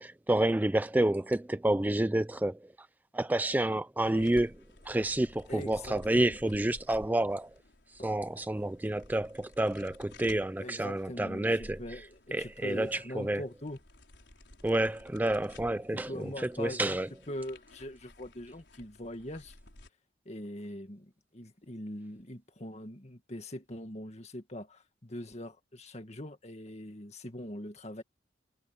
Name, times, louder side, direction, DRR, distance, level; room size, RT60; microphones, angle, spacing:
voice 1, 0.0-2.9 3.1-4.6 4.9-7.5 7.9-12.1 12.3-13.4 14.6-17.1, right 1 dB, 10° right, 0.3 m, -29 dB
sound 1, 4.0-19.9, left 1 dB, 75° left, 4.8 m, -54 dB
voice 2, 5.5-6.4 10.6-13.8 15.9-17.0 17.3-19.6 20.3-28.0, left 1 dB, 40° left, 2.0 m, -42 dB
head